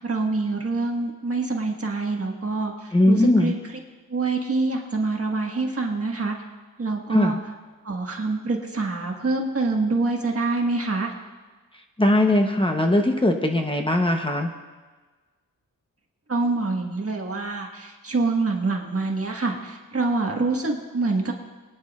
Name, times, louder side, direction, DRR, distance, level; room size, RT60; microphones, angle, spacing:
voice 1, 0.0-3.6 4.1-6.3 6.8-7.3 7.8-11.1 16.3-21.3, right 3 dB, 40° right, 0 dB, 1.6 m, -26 dB
voice 2, 2.9-3.5 7.1-7.4 12.0-14.5, left 1 dB, 15° left, 3 dB, 0.9 m, -20 dB
24.0 x 10.0 x 2.5 m, 1.3 s
wide cardioid pair, 125°, 36 cm